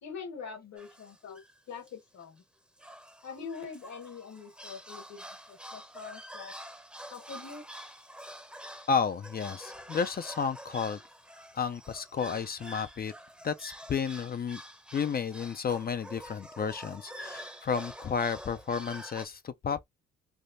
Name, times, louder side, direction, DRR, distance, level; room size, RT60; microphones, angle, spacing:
voice 1, 0.0-2.4 3.2-6.5 7.1-7.7 12.1-12.4 17.2-17.3, left 5 dB, 65° left, 1.4 m, -44 dB
sound 1, 0.8-1.6 1.9-2.0 2.2-2.4 2.8-19.3, equal, 5° right, 0.7 m, -47 dB
voice 2, 8.9-11.0 11.5-13.1 13.4-14.6 14.9-19.9, left 6 dB, 30° left, 0.4 m, -32 dB
3.3 x 2.1 x 2.5 m
cardioid pair, 90°, 30 cm